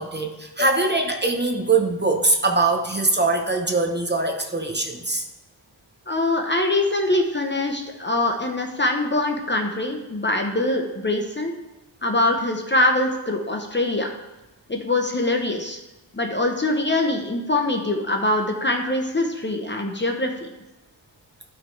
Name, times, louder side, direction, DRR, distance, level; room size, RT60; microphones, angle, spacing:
voice 1, 0.0-5.3, right 3 dB, 25° right, 4 dB, 0.9 m, -22 dB
voice 2, 6.1-11.5 12.0-14.1 14.7-15.8 16.1-20.5, left 2 dB, 25° left, 3 dB, 0.9 m, -23 dB
12.0 x 5.4 x 3.3 m, 1.0 s
wide cardioid pair, 105°, 45 cm